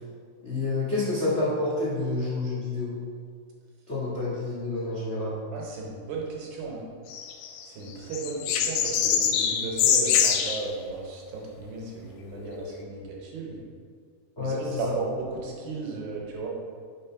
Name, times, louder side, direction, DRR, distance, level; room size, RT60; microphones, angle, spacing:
voice 1, 0.4-2.9 3.9-5.3 14.4-14.9, left 2 dB, 50° left, -11 dB, 0.7 m, -28 dB
voice 2, 5.5-6.9 7.6-13.6 14.4-16.5, right 3 dB, 75° right, -2 dB, 2.5 m, -35 dB
sound 1, 7.1-7.6 8.1-10.6 12.3-12.7, left 8 dB, 85° left, 2.5 m, -24 dB
5.4 x 4.1 x 5.7 m, 2.1 s
omnidirectional pair, 4.5 m